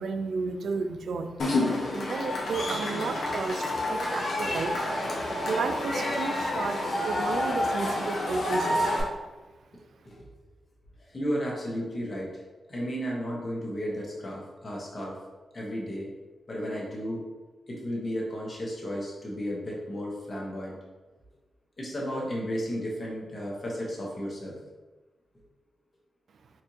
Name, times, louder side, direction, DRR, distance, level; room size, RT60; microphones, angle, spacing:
voice 1, 0.0-1.4 1.9-4.9 5.4-8.9, right 4 dB, 75° right, 7 dB, 0.3 m, -32 dB
Cheering / Crowd, 1.4-9.0, left 1 dB, 80° left, 0.8 m, -29 dB
voice 2, 11.1-12.4 12.7-15.2 15.5-16.1 16.5-17.2 17.7-20.8 21.8-24.5, equal, 40° left, -4 dB, 1.1 m, -33 dB
4.4 x 2.5 x 2.9 m, 1.2 s
cardioid pair, 85°, 0 cm